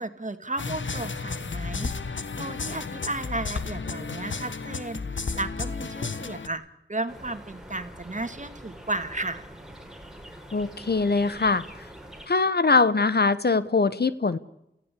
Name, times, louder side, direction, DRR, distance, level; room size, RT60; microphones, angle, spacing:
voice 1, 0.0-6.6 6.9-9.5, right 2 dB, 40° right, 10 dB, 2.0 m, -34 dB
sound 1, 0.6-6.5, left 4 dB, 90° left, 1.2 m, -33 dB
sound 2, 7.1-12.3, equal, 5° right, 4.1 m, -45 dB
voice 2, 10.5-11.6 12.3-14.4, left 4 dB, 60° left, 15 dB, 1.0 m, -22 dB
29.5 x 15.5 x 8.4 m, 0.88 s
wide cardioid pair, 40°, 19 cm